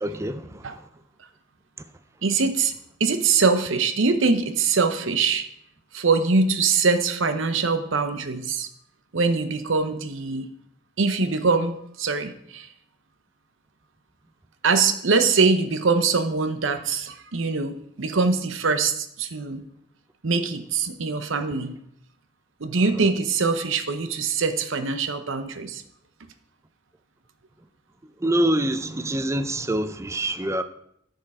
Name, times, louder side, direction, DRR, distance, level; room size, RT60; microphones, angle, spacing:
voice 1, 0.0-0.8 28.2-30.6, right 1 dB, 15° right, 0.4 m, -25 dB
voice 2, 2.2-2.7 3.0-5.4 5.9-8.7 9.1-10.5 11.0-12.7 14.6-19.6 20.2-21.7 22.6-25.8, right 4 dB, 65° right, 0.8 m, -23 dB
9.7 x 6.6 x 4.9 m
head